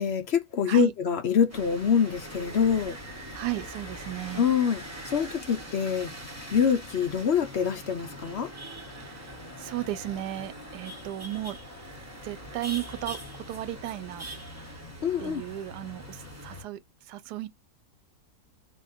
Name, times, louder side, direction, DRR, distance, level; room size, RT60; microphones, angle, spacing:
voice 1, 0.0-3.0 4.4-6.1 6.5-8.5 15.0-15.4, left 7 dB, 55° left, 0.7 m, -25 dB
sound 1, 1.5-16.6, equal, 10° right, 1.0 m, -42 dB
voice 2, 3.3-4.5 8.9-11.6 12.2-13.2 13.5-14.3 15.2-16.8 17.0-17.5, right 15 dB, 85° right, 1.1 m, -35 dB
3.6 x 2.5 x 4.2 m
omnidirectional pair, 1.7 m